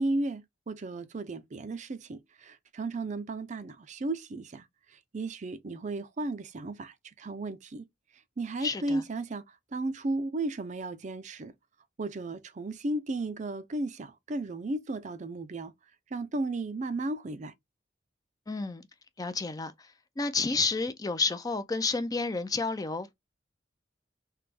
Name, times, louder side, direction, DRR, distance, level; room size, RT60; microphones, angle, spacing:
voice 1, 0.0-7.8 8.4-11.5 12.0-15.7 16.1-17.5, right 2 dB, 40° right, 0.5 m, -34 dB
voice 2, 8.6-9.0 18.5-18.9 19.2-19.7 20.2-23.1, left 4 dB, 20° left, 0.4 m, -30 dB
3.3 x 3.0 x 3.3 m
head